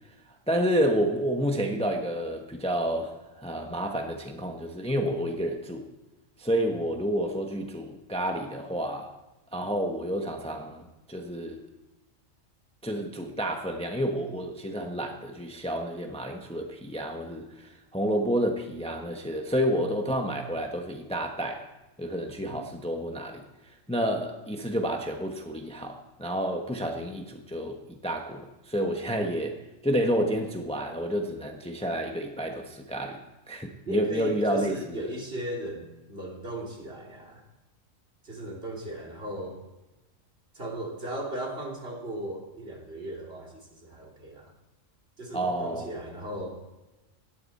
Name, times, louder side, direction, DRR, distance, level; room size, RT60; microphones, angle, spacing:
voice 1, 0.5-5.9 6.4-9.1 9.5-11.6 12.8-21.7 22.0-23.4 23.9-29.6 29.8-33.2 33.5-35.1 45.3-45.9, equal, 5° left, 3 dB, 1.1 m, -30 dB
voice 2, 22.4-22.7 33.9-37.4 38.2-39.6 40.5-44.5 45.2-46.6, right 1 dB, 50° right, -1 dB, 3.2 m, -37 dB
17.5 x 12.5 x 4.2 m, 1.0 s
omnidirectional pair, 1.3 m